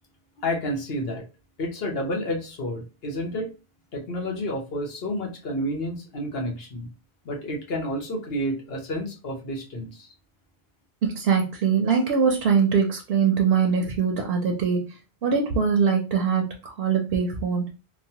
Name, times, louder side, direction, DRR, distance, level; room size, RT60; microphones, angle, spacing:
voice 1, 0.4-1.2 1.6-3.5 3.9-6.9 7.2-10.1, equal, 70° left, 0 dB, 1.0 m, -30 dB
voice 2, 11.2-14.8 15.2-17.7, right 6 dB, 70° right, 1 dB, 0.8 m, -22 dB
3.0 x 2.1 x 2.7 m, 0.31 s
omnidirectional pair, 1.1 m